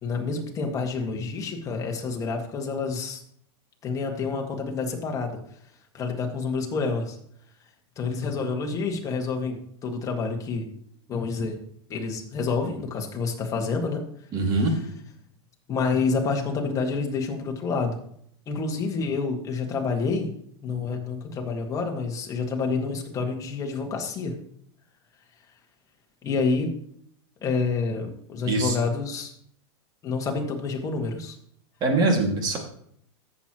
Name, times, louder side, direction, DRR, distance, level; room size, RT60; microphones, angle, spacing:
voice 1, 0.0-3.2 3.8-5.4 5.9-7.2 8.0-10.7 11.1-11.6 11.9-14.0 14.5-14.8 15.7-18.0 18.5-20.3 20.6-24.4 26.2-26.7 27.4-29.3 30.0-31.4, left 4 dB, 25° left, 2 dB, 1.8 m, -28 dB
voice 2, 14.3-14.7 28.5-28.8 31.8-32.6, right 2 dB, 30° right, 2 dB, 2.2 m, -22 dB
14.0 x 7.7 x 3.0 m, 0.67 s
supercardioid pair, 140°, 14 cm